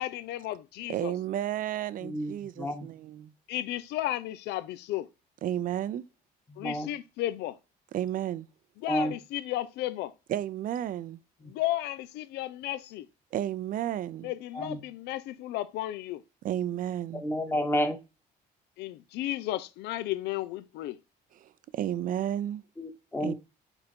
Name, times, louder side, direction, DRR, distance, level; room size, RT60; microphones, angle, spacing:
voice 1, 0.0-1.1 3.5-5.1 6.6-7.6 8.8-10.1 11.5-13.1 14.2-16.2 18.8-21.0, left 14 dB, 80° left, 0.6 m, -34 dB
voice 2, 0.9-3.3 5.4-6.1 7.9-8.5 10.3-11.2 13.3-14.3 16.4-17.2 21.4-22.6 23.2-23.3, right 11 dB, 55° right, 0.5 m, -32 dB
voice 3, 2.0-2.9 6.5-6.9 8.9-9.2 11.4-11.5 14.5-14.8 17.2-18.0 22.8-23.3, equal, 15° left, 1.2 m, -30 dB
5.3 x 4.1 x 4.4 m
cardioid pair, 110°, 17 cm